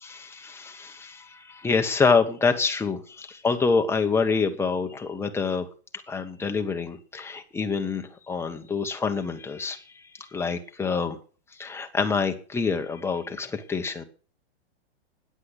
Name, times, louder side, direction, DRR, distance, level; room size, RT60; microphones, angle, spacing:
voice 1, 0.0-5.7 6.1-10.0 10.3-11.2 11.6-14.0, left 5 dB, 10° left, 5 dB, 1.4 m, -26 dB
9.8 x 8.4 x 8.3 m, 0.39 s
hypercardioid pair, 140°, 32 cm